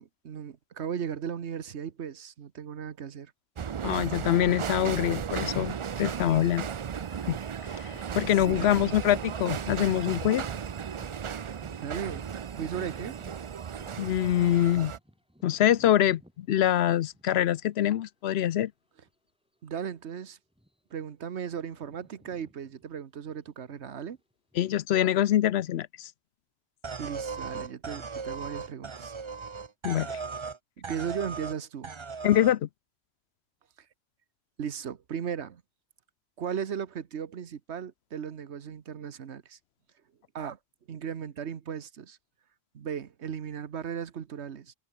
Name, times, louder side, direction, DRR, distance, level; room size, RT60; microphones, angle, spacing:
voice 1, 0.0-3.3 8.4-9.0 11.8-13.2 19.6-20.4 20.9-24.2 27.0-29.1 30.8-31.9 34.6-35.6 36.4-39.6 40.3-40.6 40.9-42.2 42.7-44.7, right 7 dB, 75° right, 1.3 m, -36 dB
sound 1, 3.6-15.0, right 7 dB, 60° right, 0.3 m, -35 dB
voice 2, 3.8-6.7 7.3-7.4 7.7-10.4 14.0-14.9 15.4-18.7 24.6-26.1 29.8-30.2 32.2-32.7, left 12 dB, 70° left, 0.8 m, -25 dB
sound 2, 12.6-17.7 18.3-18.4 19.1-19.3 19.6-19.8 20.5-21.0 21.3-24.7, equal, 5° right, 7.8 m, -57 dB
sound 3, 26.8-30.6 30.8-31.6 31.8-32.6, right 5 dB, 30° right, 0.7 m, -37 dB
omnidirectional pair, 1.2 m